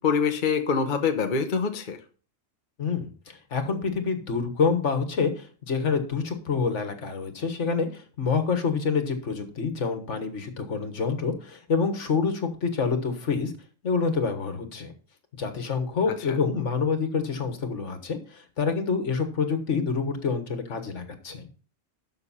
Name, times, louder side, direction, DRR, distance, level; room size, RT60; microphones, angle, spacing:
voice 1, 0.0-2.0 16.3-16.4, left 6 dB, 45° left, 6 dB, 1.0 m, -25 dB
voice 2, 2.8-13.5 13.8-14.9 15.4-21.5, left 5 dB, 65° left, 8 dB, 1.7 m, -27 dB
12.0 x 6.6 x 4.2 m, 0.39 s
omnidirectional pair, 1.3 m